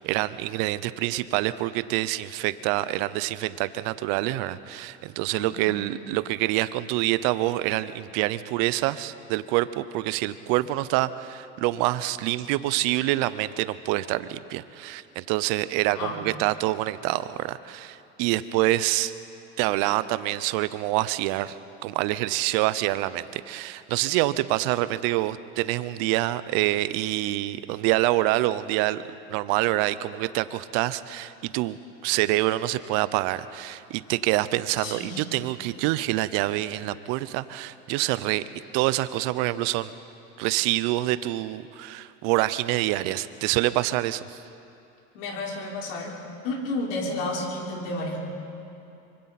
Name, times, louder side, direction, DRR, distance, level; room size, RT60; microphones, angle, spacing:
voice 1, 0.0-19.1 19.6-29.0 29.3-38.4 38.7-39.9 40.4-44.4, right 16 dB, 60° right, 15 dB, 0.9 m, -26 dB
voice 2, 5.3-5.8 15.9-16.2 34.8-35.2 45.1-46.1 46.4-48.2, left 2 dB, 70° left, -1 dB, 4.4 m, -31 dB
25.5 x 24.5 x 4.3 m, 2.7 s
hypercardioid pair, 100°, 38 cm